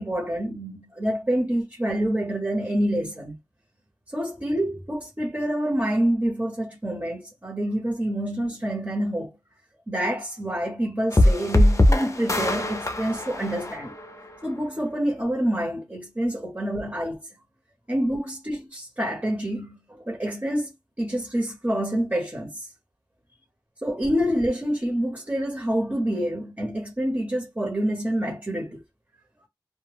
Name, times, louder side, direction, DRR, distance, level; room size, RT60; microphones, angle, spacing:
voice 1, 0.0-3.3 4.1-9.3 9.9-13.9 14.4-17.2 17.9-20.7 21.0-22.7 23.8-28.8, equal, 25° right, 1.1 m, -27 dB
sound 1, 11.1-14.3, left 1 dB, 40° left, 0.5 m, -21 dB
2.3 x 2.1 x 3.4 m
wide cardioid pair, 55°, 8 cm